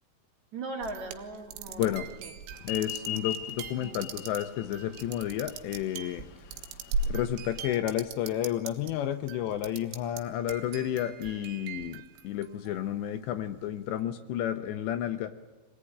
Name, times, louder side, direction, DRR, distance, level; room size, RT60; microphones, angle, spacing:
voice 1, 0.5-2.3 3.8-4.1, right 3 dB, 45° right, 2 dB, 3.2 m, -39 dB
sound 1, 0.8-8.9 9.3-10.2 10.5-12.9, right 4 dB, 80° right, 3.9 m, -39 dB
voice 2, 1.7-2.1 2.7-6.3 7.1-15.3, left 11 dB, 75° left, 8 dB, 2.9 m, -31 dB
sound 2, 2.6-7.6, left 10 dB, 90° left, 3.9 m, -40 dB
24.5 x 18.5 x 10.0 m, 1.3 s
omnidirectional pair, 5.7 m